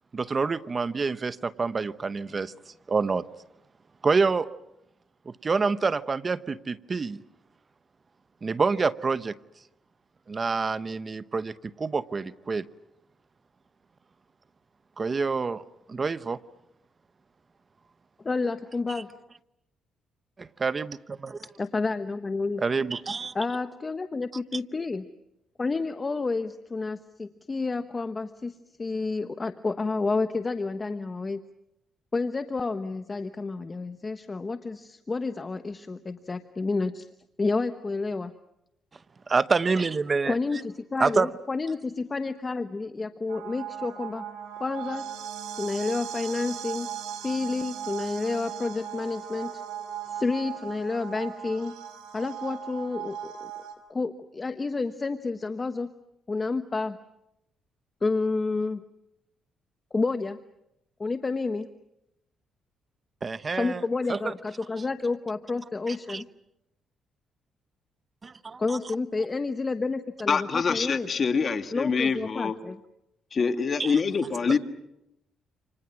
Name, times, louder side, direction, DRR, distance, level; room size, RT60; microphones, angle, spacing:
voice 1, 0.1-3.3 4.0-4.5 5.3-7.2 8.4-9.4 10.3-12.6 15.0-15.6 15.9-16.4 18.9-19.0 20.4-21.4 22.6-23.4 39.3-40.4 41.0-41.3 63.2-63.8 64.1-64.3 65.9-66.2 68.2-68.8 73.8-74.0 74.5-74.6, right 4 dB, 35° right, 14 dB, 0.9 m, -27 dB
voice 2, 18.2-19.1 21.6-22.6 23.3-25.1 25.6-31.4 32.1-37.1 37.4-38.3 40.2-44.2 44.6-45.1 45.6-46.9 47.2-49.5 50.1-51.7 52.1-53.5 53.9-55.9 56.3-57.0 58.0-58.8 59.9-60.4 61.0-61.7 63.5-66.3 68.6-71.1 71.7-72.8, left 3 dB, 30° left, 9 dB, 1.1 m, -30 dB
sound 1, 43.3-53.7, right 9 dB, 85° right, 5.1 m, -38 dB
voice 3, 70.3-72.5 73.3-74.6, left 5 dB, 45° left, 7 dB, 2.2 m, -25 dB
29.5 x 27.5 x 6.1 m, 0.85 s
cardioid pair, 90°, 0 cm